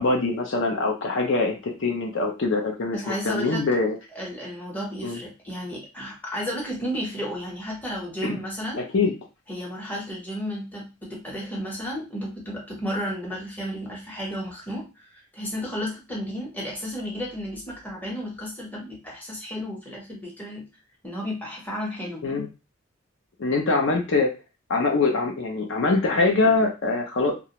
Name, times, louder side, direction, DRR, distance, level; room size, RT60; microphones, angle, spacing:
voice 1, 0.0-4.0 5.0-5.2 8.2-8.4 8.8-9.1 22.2-22.5 23.4-24.3 24.7-27.4, left 3 dB, 60° left, 2 dB, 0.5 m, -23 dB
voice 2, 2.9-3.7 4.1-8.8 9.5-20.7 21.0-22.2, equal, 10° left, -3 dB, 0.7 m, -33 dB
2.4 x 2.1 x 2.8 m, 0.29 s
head